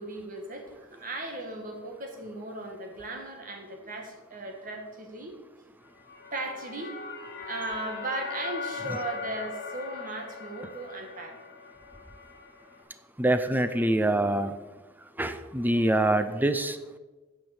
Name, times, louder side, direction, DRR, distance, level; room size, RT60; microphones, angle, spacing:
voice 1, 0.0-5.4 6.3-6.9 7.4-11.4, right 2 dB, 45° right, 2 dB, 1.9 m, -37 dB
sound 1, 5.9-12.8, left 5 dB, 55° left, 1.6 m, -40 dB
voice 2, 13.2-14.5 15.2-16.8, right 1 dB, 10° right, 10 dB, 0.6 m, -25 dB
9.7 x 5.9 x 7.1 m, 1.2 s
head